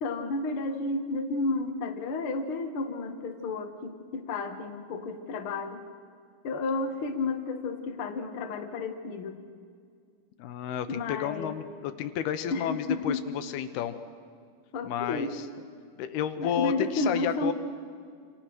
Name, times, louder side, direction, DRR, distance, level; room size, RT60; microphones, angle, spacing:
voice 1, 0.0-5.8 6.4-9.4 10.9-11.6 12.5-13.2 14.7-15.4 16.4-17.5, left 3 dB, 45° left, 4 dB, 1.9 m, -32 dB
voice 2, 10.4-13.9 14.8-15.4 16.0-17.5, left 9 dB, 80° left, 10 dB, 3.0 m, -31 dB
28.5 x 28.0 x 6.2 m, 2.2 s
omnidirectional pair, 4.5 m